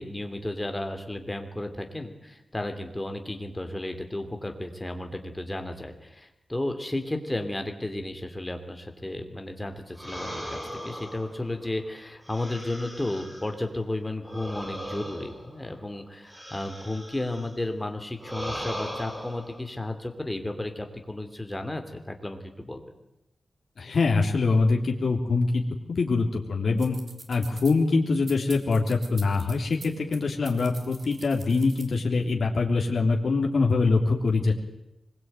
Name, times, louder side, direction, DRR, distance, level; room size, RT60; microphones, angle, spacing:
voice 1, 0.0-22.8, left 1 dB, 15° left, 6 dB, 3.1 m, -33 dB
sound 1, 9.9-13.6 14.2-17.6 18.2-19.6, equal, 15° right, 7.5 m, -39 dB
voice 2, 23.8-25.6 25.9-27.0 27.3-34.5, left 3 dB, 60° left, 0 dB, 3.3 m, -24 dB
sound 2, 26.8-27.7 28.3-30.2 30.5-32.0, right 3 dB, 50° right, 3.8 m, -45 dB
25.0 x 21.5 x 9.2 m, 0.87 s
wide cardioid pair, 140°, 0 cm